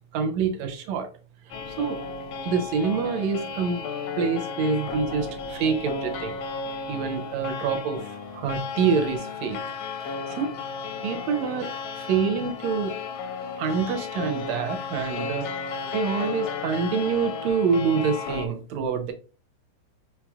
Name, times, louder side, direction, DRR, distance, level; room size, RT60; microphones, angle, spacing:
voice 1, 0.1-1.1 1.8-2.0 2.5-3.9 4.2-6.4 6.9-9.6 10.0-10.5 11.0-11.7 12.0-12.9 13.6-15.5 15.9-19.1, right 6 dB, 75° right, 1.8 m, -26 dB
sound 1, 1.5-18.5, left 5 dB, 80° left, 1.4 m, -34 dB
5.4 x 3.0 x 2.3 m
omnidirectional pair, 3.3 m